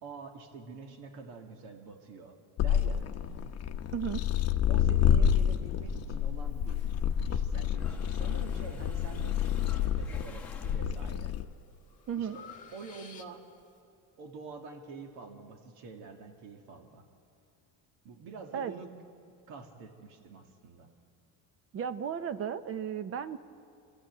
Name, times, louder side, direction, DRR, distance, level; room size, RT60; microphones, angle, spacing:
voice 1, 0.0-3.2 4.7-6.9 7.2-11.3 12.2-12.5 12.7-13.4 14.2-17.1 18.0-18.9 19.3-20.9, right 4 dB, 90° right, 4 dB, 2.1 m, -47 dB
sound 1, 2.6-11.4, left 9 dB, 40° left, 0.9 m, -28 dB
voice 2, 3.9-4.3 12.1-12.4 18.5-18.7 21.7-23.4, right 8 dB, 35° right, 13 dB, 0.9 m, -34 dB
Mechanisms, 6.5-7.4 7.7-11.3, left 4 dB, 5° left, 1.6 m, -52 dB
Breathing, 10.5-11.0 11.4-13.7, left 6 dB, 20° left, 1.6 m, -52 dB
26.0 x 14.5 x 9.2 m, 2.4 s
cardioid pair, 150°, 38 cm